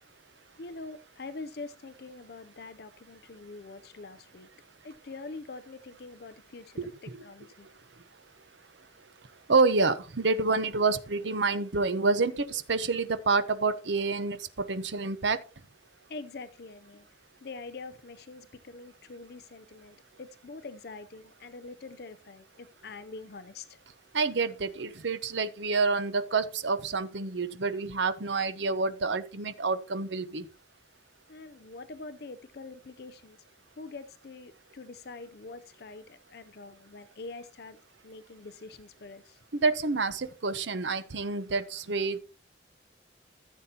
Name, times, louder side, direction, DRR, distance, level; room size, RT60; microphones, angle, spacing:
voice 1, 0.6-4.5 4.8-6.8 7.2-7.7 16.1-17.1 17.4-23.8 31.3-33.4 33.8-37.8 38.0-39.4, left 3 dB, 55° left, 0.5 m, -44 dB
voice 2, 6.8-7.2 9.5-15.4 24.1-30.5 39.5-42.2, right 4 dB, 70° right, 0.8 m, -28 dB
14.5 x 7.2 x 2.8 m
head